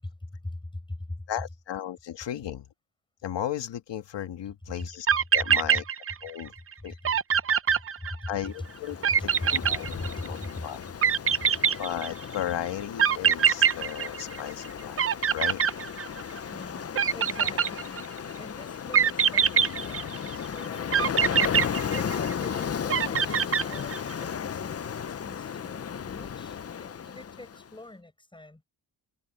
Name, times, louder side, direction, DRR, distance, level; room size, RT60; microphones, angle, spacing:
voice 1, 0.0-1.2 6.8-6.9 8.0-8.3 9.4-10.6 16.5-18.1 18.4-21.2 21.9-28.6, left 2 dB, 10° left, 6.3 m, -42 dB
voice 2, 1.3-2.7 3.2-5.1 5.3-5.8 6.2-6.5 6.8-7.1 8.3-9.9 10.3-10.8 11.8-15.1 15.3-15.6, left 10 dB, 80° left, 1.6 m, -35 dB
sound 1, 4.8-4.9 5.1-6.4 6.7-6.8 7.0-8.5 9.0-10.4 11.0-12.3 13.0-14.7 15.0-16.4 16.9-18.2 18.9-20.4 20.9-22.4 22.9-24.1, right 7 dB, 30° right, 0.6 m, -24 dB
Ocean, 8.5-27.7, left 8 dB, 35° left, 0.6 m, -35 dB
wide cardioid pair, 155°, 42 cm